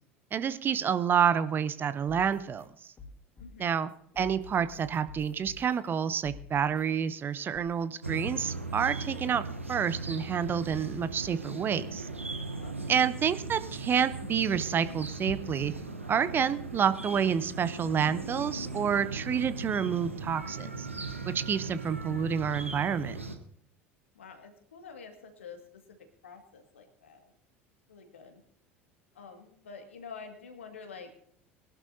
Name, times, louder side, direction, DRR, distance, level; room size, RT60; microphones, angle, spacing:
voice 1, 0.3-2.7 3.6-9.4 9.7-12.0 12.9-15.7 16.1-20.9 21.3-23.2, right 7 dB, 30° right, 14 dB, 0.8 m, -29 dB
sound 1, 2.1-7.2 7.5-8.0, left 4 dB, 30° left, 3.1 m, -49 dB
sound 2, 8.0-23.4, right 3 dB, 90° right, 1.0 m, -38 dB
voice 2, 24.1-26.0 26.2-27.3 27.9-28.4 29.1-31.3, left 5 dB, 75° left, 5 dB, 2.0 m, -48 dB
21.5 x 12.0 x 2.8 m, 0.67 s
figure-of-eight pair, 70°, 7 cm